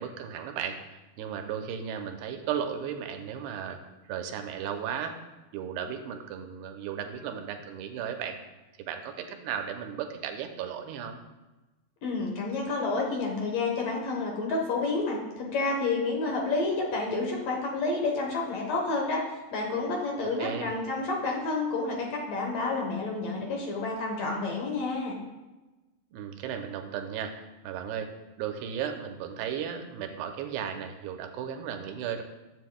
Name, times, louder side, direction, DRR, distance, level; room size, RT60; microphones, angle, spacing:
voice 1, 0.0-3.8 4.1-5.2 5.5-8.4 8.8-11.2 20.2-20.7 26.1-27.4 27.6-28.1 28.4-32.2, right 8 dB, 90° right, 5 dB, 2.8 m, -35 dB
voice 2, 12.0-19.2 19.5-25.1, left 3 dB, 65° left, -1 dB, 1.7 m, -29 dB
14.0 x 7.6 x 2.3 m, 1.1 s
omnidirectional pair, 4.7 m